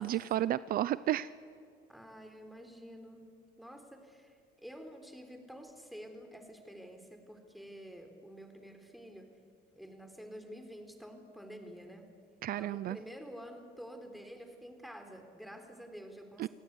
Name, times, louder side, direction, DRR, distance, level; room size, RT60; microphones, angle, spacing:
voice 1, 0.0-1.3 12.4-13.0 16.4-16.5, right 13 dB, 60° right, 17 dB, 0.6 m, -32 dB
voice 2, 1.9-3.3 3.6-9.3 9.8-12.1 12.6-16.5, equal, ahead, 4 dB, 4.1 m, -49 dB
28.5 x 17.0 x 9.8 m, 2.2 s
cardioid pair, 110°, 17 cm